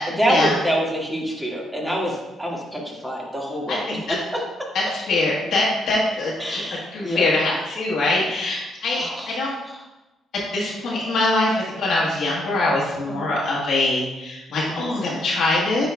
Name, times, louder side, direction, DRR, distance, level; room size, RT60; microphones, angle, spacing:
voice 1, 0.2-4.4 6.4-7.3 8.9-9.8 13.1-13.3 14.7-14.9, equal, 10° right, -3 dB, 1.8 m, -26 dB
voice 2, 3.7-4.2 4.7-9.5 10.3-15.9, left 2 dB, 70° left, -5 dB, 1.2 m, -23 dB
9.1 x 4.6 x 2.3 m, 1.1 s
cardioid pair, 90°, 0 cm